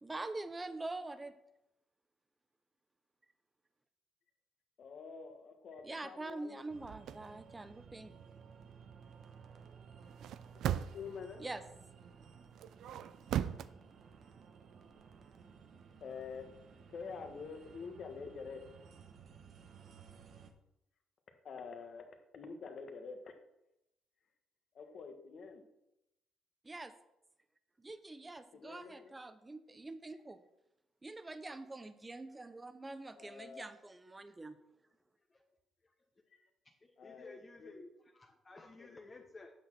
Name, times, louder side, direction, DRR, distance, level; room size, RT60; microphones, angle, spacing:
voice 1, 0.0-1.3 5.8-8.1 11.4-11.6 26.6-26.9 27.8-30.4 31.0-34.6, right 2 dB, 20° right, 11 dB, 0.8 m, -45 dB
voice 2, 4.8-6.6 10.5-10.6 10.9-11.4 16.0-16.5 16.9-18.7 21.4-22.1 22.3-23.3 24.7-25.6 28.5-29.2 33.1-33.6 36.3-36.4 37.0-37.7 38.8-39.0, left 5 dB, 60° left, 5 dB, 1.5 m, -47 dB
sound 1, 6.7-20.5, right 6 dB, 65° right, 1.0 m, -56 dB
sound 2, 6.8-7.2 10.1-11.2 12.6-13.7, right 10 dB, 80° right, 0.4 m, -37 dB
voice 3, 36.6-39.5, left 3 dB, 30° left, 2 dB, 1.0 m, -55 dB
8.4 x 6.3 x 6.1 m, 0.88 s
cardioid pair, 90°, 0 cm